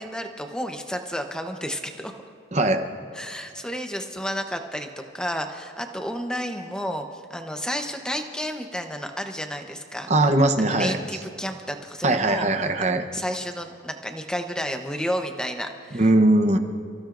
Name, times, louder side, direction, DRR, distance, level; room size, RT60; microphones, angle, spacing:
voice 1, 0.0-2.1 3.1-4.9 5.1-10.1 10.6-12.5 13.1-16.0, equal, 5° left, 5 dB, 0.8 m, -31 dB
voice 2, 2.5-2.8 10.1-11.0 12.0-13.0 15.9-16.6, right 2 dB, 35° right, 7 dB, 0.9 m, -20 dB
29.5 x 15.5 x 2.6 m, 2.3 s
head